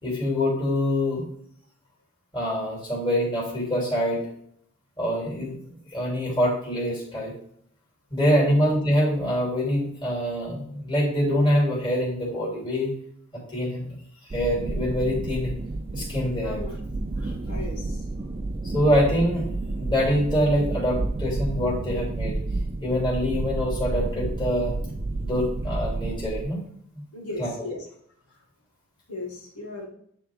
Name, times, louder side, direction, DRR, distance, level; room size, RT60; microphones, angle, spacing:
voice 1, 0.0-1.3 2.3-4.3 5.0-5.6 5.9-7.3 8.1-12.9 13.5-14.0 14.3-15.5 15.9-16.6 17.2-17.3 18.7-19.5 19.8-22.4 22.8-24.7 25.2-26.6 27.4-27.5, equal, 20° left, -4 dB, 3.1 m, -25 dB
sound 1, 14.3-26.4, right 2 dB, 25° right, 0.3 m, -30 dB
voice 2, 17.5-18.0 27.1-27.8 29.1-29.9, left 2 dB, 80° left, -3 dB, 2.2 m, -36 dB
10.5 x 3.6 x 3.5 m, 0.67 s
head